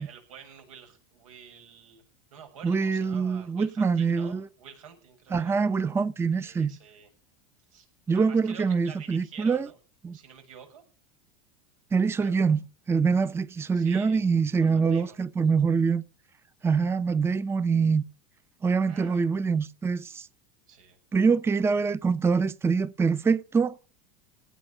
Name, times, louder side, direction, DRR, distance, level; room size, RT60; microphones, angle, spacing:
voice 1, 0.0-2.0 2.3-5.6 6.3-7.1 7.7-7.9 8.1-9.8 10.1-10.8 12.2-12.4 13.7-14.2 14.6-15.2 18.9-19.3 20.7-21.0, right 7 dB, 90° right, 8.0 m, -48 dB
voice 2, 2.6-4.5 5.3-6.7 8.1-9.7 10.0-10.2 11.9-12.6 12.9-16.0 16.6-18.0 18.6-20.3 21.1-23.7, right 5 dB, 15° right, 0.7 m, -24 dB
18.5 x 8.8 x 6.8 m
supercardioid pair, 115°, 17 cm